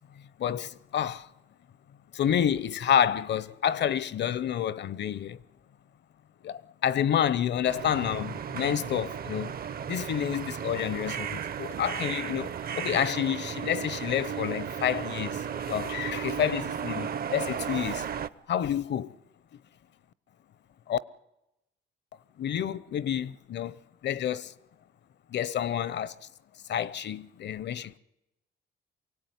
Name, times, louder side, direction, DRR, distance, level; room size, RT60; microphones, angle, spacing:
voice 1, 0.4-1.3 2.1-5.4 6.4-9.5 9.9-18.1 18.5-19.2 20.9-21.0 22.4-23.8 24.0-24.5 25.3-26.1 26.7-28.0, left 9 dB, 60° left, 0.8 m, -29 dB
sound 1, 7.7-18.3, right 8 dB, 50° right, 0.8 m, -35 dB
23.5 x 17.0 x 9.6 m
cardioid pair, 90°, 20 cm